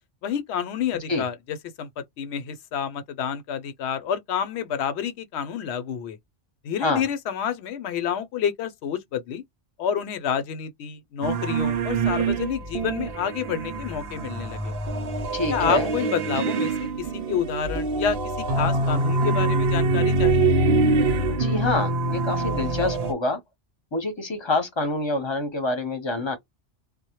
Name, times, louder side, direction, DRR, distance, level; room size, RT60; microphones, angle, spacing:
voice 1, 0.2-6.2 6.6-9.4 9.8-14.7 15.5-18.2 18.6-20.5, left 8 dB, 75° left, 0.8 m, -29 dB
sound 1, 11.2-23.1, right 3 dB, 70° right, 0.9 m, -24 dB
voice 2, 15.3-15.9 21.3-23.4 23.9-26.4, left 2 dB, 25° left, 0.8 m, -26 dB
2.1 x 2.1 x 2.9 m
omnidirectional pair, 1.2 m